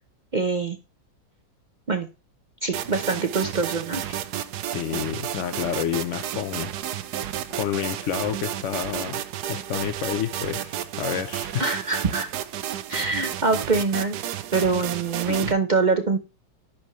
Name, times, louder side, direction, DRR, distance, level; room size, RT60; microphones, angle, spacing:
voice 1, 0.3-0.8 1.9-2.1 2.6-4.2 11.6-12.3 12.9-14.2 14.5-16.2, right 4 dB, 55° right, 0.5 m, -24 dB
sound 1, 2.7-15.5, right 11 dB, 70° right, 1.1 m, -32 dB
voice 2, 4.7-6.7 7.5-9.2 9.5-11.7 15.3-15.5, left 9 dB, 75° left, 0.7 m, -29 dB
10.5 x 4.7 x 3.1 m
omnidirectional pair, 2.0 m